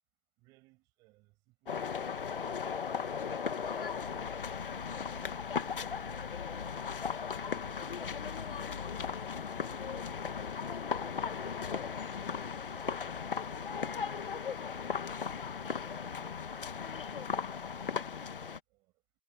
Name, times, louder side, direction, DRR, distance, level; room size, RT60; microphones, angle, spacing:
voice 1, 0.4-2.5 12.9-15.2 15.7-16.6 18.7-19.0, right 22 dB, 10° right, 6.7 m, -66 dB
sound 1, 1.7-18.6, left 6 dB, 65° left, 1.8 m, -37 dB
sound 2, 4.0-9.4, left 6 dB, 50° left, 1.9 m, -50 dB
hypercardioid pair, 175°, 30 cm